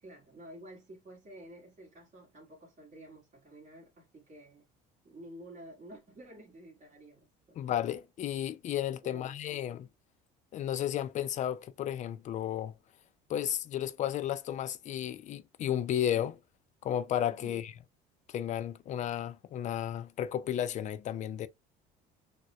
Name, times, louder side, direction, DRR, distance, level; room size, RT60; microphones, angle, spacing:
voice 1, 0.0-4.7 5.0-7.8 9.0-9.7 17.3-17.6, right 1 dB, 40° right, 1.7 m, -51 dB
voice 2, 7.6-9.9 10.5-12.7 13.3-16.4 16.8-17.7 18.3-21.5, left 10 dB, 45° left, 0.4 m, -33 dB
6.3 x 2.2 x 2.3 m
cardioid pair, 110°, 18 cm